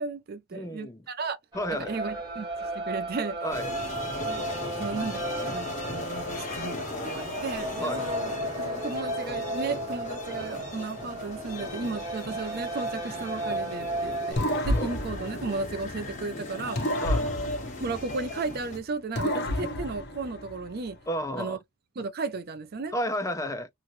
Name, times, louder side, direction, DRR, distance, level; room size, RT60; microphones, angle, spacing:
voice 1, 0.0-1.4 1.8-2.5 2.7-3.4 4.3-4.4 4.7-8.3 8.6-14.4 14.7-16.8 17.8-21.0 21.4-21.6 22.0-22.9, right 4 dB, 45° right, 0.5 m, -34 dB
voice 2, 0.5-1.0 1.5-1.9 3.4-3.7 7.8-8.1 14.7-14.9 17.0-17.4 21.1-21.6 22.9-23.7, equal, 15° left, 0.4 m, -32 dB
sound 1, 1.5-14.3, right 1 dB, 20° right, 1.3 m, -35 dB
sound 2, 3.5-18.8, left 2 dB, 35° left, 1.3 m, -37 dB
sound 3, 14.4-16.2 16.8-18.6 19.1-20.9, left 1 dB, 50° left, 0.8 m, -31 dB
2.9 x 2.7 x 2.6 m
head